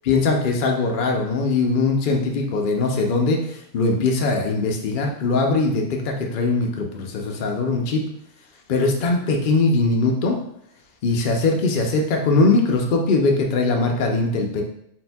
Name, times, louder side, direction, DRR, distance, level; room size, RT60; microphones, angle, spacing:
voice 1, 0.1-3.4 3.7-8.0 8.7-10.4 11.0-14.6, left 3 dB, 70° left, 2 dB, 0.4 m, -21 dB
4.3 x 4.1 x 2.2 m, 0.73 s
omnidirectional pair, 1.5 m